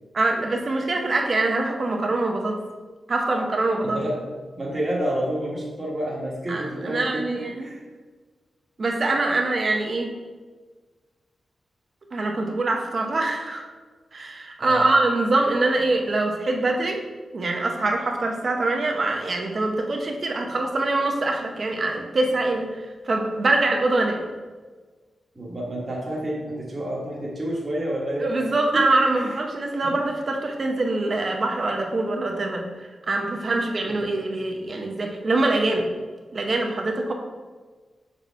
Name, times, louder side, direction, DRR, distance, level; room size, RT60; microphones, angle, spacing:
voice 1, 0.1-2.6 3.1-4.0 6.5-7.7 8.8-10.1 12.1-13.7 14.1-17.0 17.3-24.3 28.2-35.9 36.3-37.1, right 2 dB, 35° right, 2 dB, 0.8 m, -24 dB
voice 2, 3.8-4.2 4.5-7.8 14.6-14.8 25.3-28.3 29.1-29.4 29.8-30.0 33.8-34.0, right 1 dB, 20° right, -5 dB, 1.4 m, -29 dB
6.7 x 4.2 x 4.6 m, 1.4 s
wide cardioid pair, 165°, 0 cm